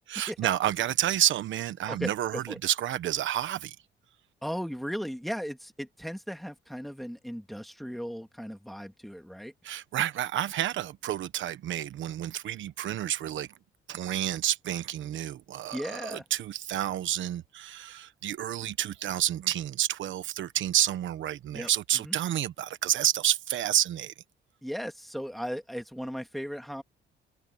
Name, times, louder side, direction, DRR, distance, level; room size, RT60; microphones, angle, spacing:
voice 1, 0.1-3.8 9.6-13.5 13.9-24.1, right 12 dB, 75° right, 1.2 m, -29 dB
voice 2, 1.9-2.6 4.4-9.5 15.7-16.2 21.5-21.7 22.0-22.1 24.6-26.8, equal, ahead, 3.0 m, -36 dB
cardioid pair, 90°, 20 cm